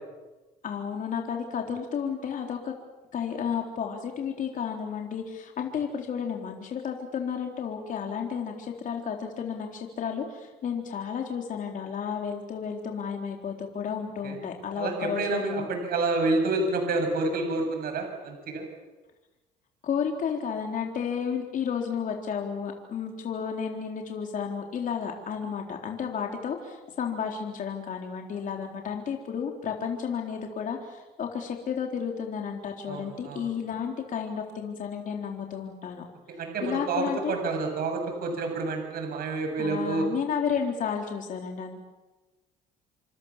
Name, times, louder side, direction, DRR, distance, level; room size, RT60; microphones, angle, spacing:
voice 1, 0.6-2.7 3.1-15.7 19.8-36.0 36.6-37.3 39.6-41.8, left 7 dB, 50° left, 2 dB, 3.9 m, -32 dB
voice 2, 14.8-18.6 32.9-33.4 36.4-40.1, right 3 dB, 60° right, 4 dB, 7.6 m, -28 dB
28.5 x 26.5 x 7.4 m, 1.1 s
cardioid pair, 110°, 17 cm